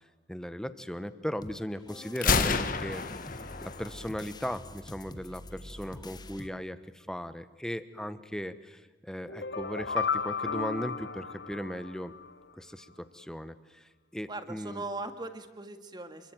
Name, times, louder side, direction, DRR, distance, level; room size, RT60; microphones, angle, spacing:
voice 1, 0.3-3.0 3.6-12.1 12.5-14.8, equal, 5° left, 12 dB, 1.1 m, -37 dB
sound 1, 1.4-6.5, left 1 dB, 25° left, 1.1 m, -46 dB
Gunshot gunfire, 2.2-4.1, left 4 dB, 50° left, 1.6 m, -29 dB
sound 2, 9.3-12.3, left 5 dB, 65° left, 1.0 m, -34 dB
voice 2, 14.3-16.3, right 2 dB, 25° right, 9 dB, 1.9 m, -39 dB
28.5 x 22.5 x 9.1 m, 1.1 s
head